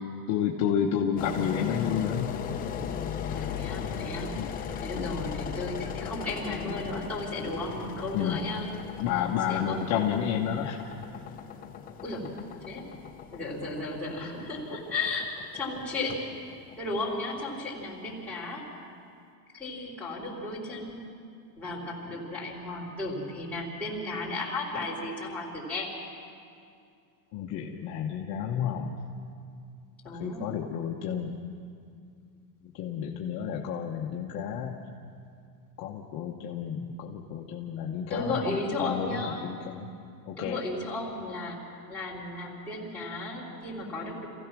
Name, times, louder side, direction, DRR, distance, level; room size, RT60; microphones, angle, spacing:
voice 1, 0.3-2.3 4.3-4.5 4.9-5.1 6.9-7.0 8.1-8.4 9.0-10.8 27.3-28.9 30.2-31.3 32.7-34.8 35.8-39.9 40.3-40.6, left 8 dB, 35° left, -1 dB, 1.1 m, -31 dB
Engine, 1.2-18.1, left 7 dB, 20° left, 0.8 m, -38 dB
voice 2, 3.3-8.7 9.5-10.0 12.0-12.3 12.7-12.8 13.3-16.2 16.8-18.7 19.5-21.1 21.6-25.9 30.0-30.5 38.1-39.4 40.4-41.6 41.9-44.3, left 2 dB, 5° left, -8 dB, 4.1 m, -34 dB
27.0 x 16.0 x 6.1 m, 2.3 s
supercardioid pair, 165°, 47 cm